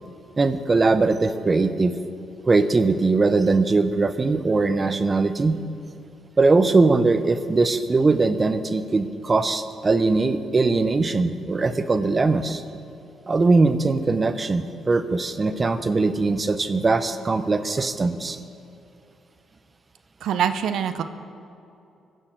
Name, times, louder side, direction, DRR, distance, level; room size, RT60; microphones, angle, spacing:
voice 1, 0.4-2.0 2.4-5.6 6.4-12.6 13.3-18.4, right 3 dB, 30° right, 11 dB, 0.8 m, -21 dB
voice 2, 20.2-21.0, right 8 dB, 75° right, 9 dB, 0.7 m, -24 dB
15.0 x 6.5 x 7.9 m, 2.7 s
cardioid pair, 90°, 0 cm